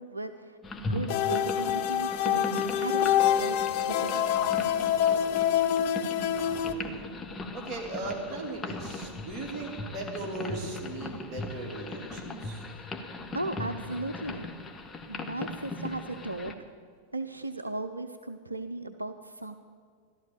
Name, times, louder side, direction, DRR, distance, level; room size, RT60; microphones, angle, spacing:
voice 1, 0.0-2.5 2.8-3.5 3.8-4.3 10.7-10.8 12.9-13.0 13.3-14.5 15.1-16.7 17.1-19.6, right 2 dB, 80° right, 9 dB, 0.6 m, -36 dB
sound 1, 0.6-16.5, left 2 dB, 15° left, 1.3 m, -39 dB
sound 2, 1.1-6.7, left 10 dB, 50° left, 0.7 m, -26 dB
voice 2, 6.6-7.1 7.5-12.7, right 2 dB, 30° right, -1 dB, 3.2 m, -38 dB
15.0 x 12.0 x 6.7 m, 2.1 s
figure-of-eight pair, 90°, 0 cm